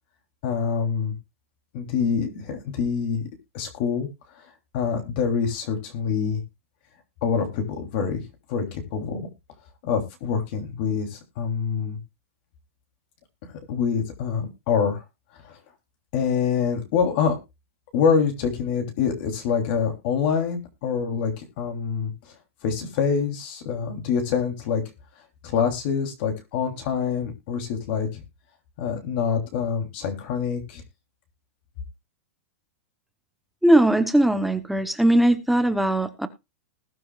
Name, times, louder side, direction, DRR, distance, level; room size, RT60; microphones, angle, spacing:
voice 1, 0.4-1.1 1.7-3.3 3.5-4.1 4.3-4.5 4.7-6.4 7.2-8.2 8.5-9.3 9.8-12.0 13.4-15.0 15.4-15.6 16.1-17.3 17.9-22.1 22.6-24.8 25.4-28.2 28.8-30.8, left 6 dB, 45° left, 4 dB, 3.1 m, -25 dB
voice 2, 33.6-36.3, right 1 dB, ahead, 9 dB, 0.9 m, -19 dB
20.0 x 7.8 x 2.4 m, 0.25 s
supercardioid pair, 160°, 8 cm